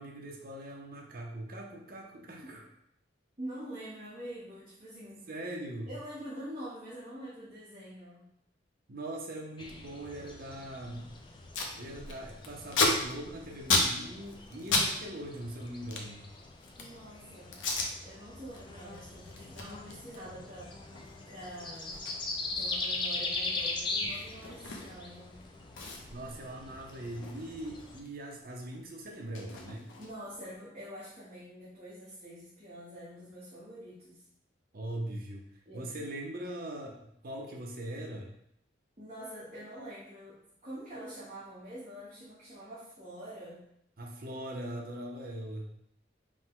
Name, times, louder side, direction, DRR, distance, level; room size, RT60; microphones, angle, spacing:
voice 1, 0.0-2.6 5.3-5.9 8.9-11.0 11.7-16.2 26.1-29.9 34.7-35.5 35.7-38.3 44.0-45.7, right 1 dB, 50° right, 0 dB, 0.7 m, -41 dB
voice 2, 3.4-5.3 5.9-8.3 16.8-17.6 18.0-20.9 21.2-22.0 22.5-25.4 30.0-34.2 35.6-35.9 39.0-43.6, equal, 35° right, -10 dB, 1.1 m, -45 dB
sound 1, 9.6-28.0, left 3 dB, 25° left, 0.4 m, -41 dB
Packing tape duct tape, 11.0-11.1 11.3-11.7 12.0-14.9 15.2-17.0 17.5-17.9 18.4-18.6 18.9-25.2 25.4-25.5 25.7-28.1 28.4-30.4, left 3 dB, 80° left, 0.7 m, -34 dB
5.1 x 2.2 x 3.6 m, 0.74 s
head